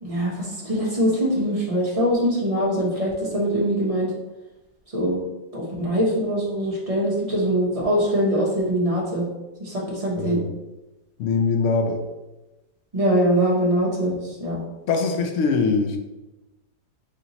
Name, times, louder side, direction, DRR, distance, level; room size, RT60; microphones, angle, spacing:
voice 1, 0.0-4.1 4.9-5.2 5.5-9.2 9.6-10.4 12.9-14.6, equal, 40° right, -5 dB, 0.5 m, -23 dB
voice 2, 11.2-12.0 14.9-16.0, left 4 dB, 75° left, 4 dB, 0.7 m, -22 dB
3.2 x 2.9 x 3.9 m, 1.0 s
omnidirectional pair, 1.8 m